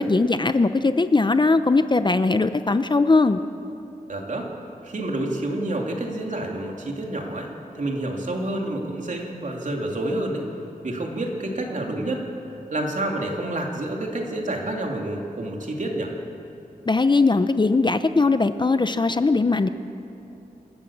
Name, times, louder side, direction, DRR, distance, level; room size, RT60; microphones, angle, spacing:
voice 1, 0.0-3.4 16.9-19.7, left 3 dB, 30° left, 10 dB, 0.6 m, -20 dB
voice 2, 4.1-4.5 4.8-10.5 10.8-12.2 12.7-16.1, right 1 dB, 55° right, 0 dB, 3.0 m, -28 dB
27.0 x 13.5 x 7.3 m, 2.9 s
wide cardioid pair, 95°, 15 cm